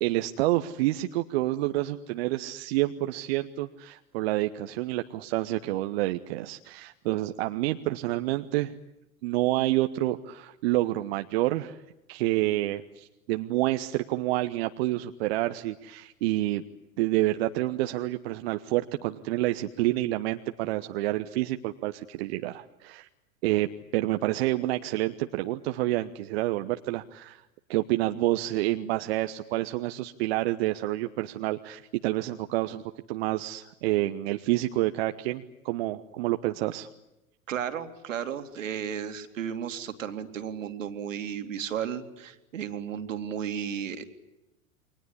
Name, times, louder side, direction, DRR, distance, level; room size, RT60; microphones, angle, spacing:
voice 1, 0.0-8.7 9.2-11.8 12.1-16.6 17.0-23.1 23.4-23.7 23.9-27.4 27.7-32.8 33.1-36.9, right 17 dB, 45° right, 7 dB, 1.1 m, -28 dB
voice 2, 37.5-44.0, right 8 dB, 65° right, 8 dB, 2.7 m, -34 dB
29.5 x 23.5 x 8.3 m, 0.97 s
figure-of-eight pair, 90°, 42 cm